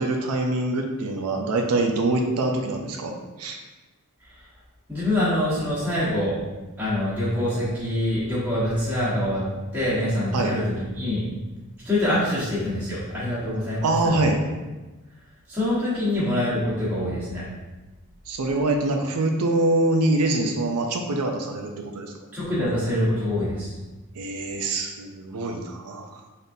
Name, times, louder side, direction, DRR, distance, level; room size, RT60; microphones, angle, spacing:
voice 1, 0.0-3.6 10.3-10.5 13.8-14.4 18.3-22.1 24.2-26.1, right 2 dB, 85° right, 4 dB, 0.5 m, -24 dB
voice 2, 4.9-6.4 6.8-9.4 9.7-11.2 11.8-14.3 15.5-17.4 22.3-23.7, left 1 dB, 10° right, -12 dB, 1.3 m, -25 dB
3.9 x 3.5 x 2.6 m, 1.2 s
head